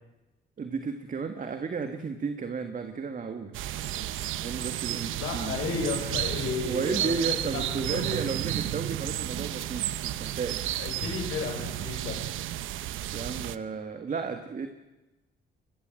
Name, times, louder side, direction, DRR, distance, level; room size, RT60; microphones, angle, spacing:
voice 1, 0.6-3.6 4.4-5.6 6.6-10.6 13.1-14.7, right 5 dB, 40° right, 7 dB, 2.0 m, -33 dB
sound 1, 3.5-13.6, right 13 dB, 85° right, 1.0 m, -32 dB
voice 2, 5.2-8.4 10.8-12.3, left 5 dB, 90° left, 3 dB, 6.5 m, -34 dB
24.0 x 21.5 x 7.9 m, 1.0 s
cardioid pair, 90°, 20 cm